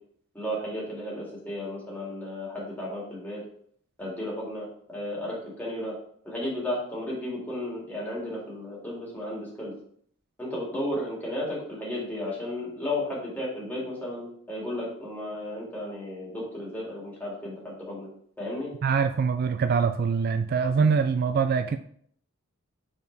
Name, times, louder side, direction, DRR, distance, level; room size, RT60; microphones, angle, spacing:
voice 1, 0.3-3.4 4.0-5.9 6.2-9.7 10.4-18.1 18.4-18.7, left 1 dB, 10° left, -5 dB, 2.3 m, -34 dB
voice 2, 18.8-21.8, right 5 dB, 45° right, 9 dB, 0.3 m, -24 dB
5.2 x 4.6 x 4.0 m, 0.62 s
head